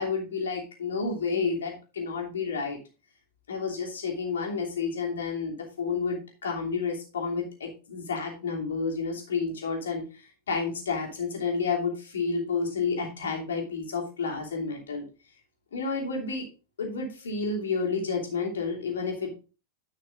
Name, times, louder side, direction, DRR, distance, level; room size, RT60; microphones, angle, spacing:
voice 1, 0.0-2.8 3.5-10.0 10.5-15.0 15.7-16.5 16.8-19.3, left 4 dB, 65° left, 1 dB, 2.8 m, -30 dB
10.0 x 5.9 x 3.8 m, 0.32 s
figure-of-eight pair, 90°, 0 cm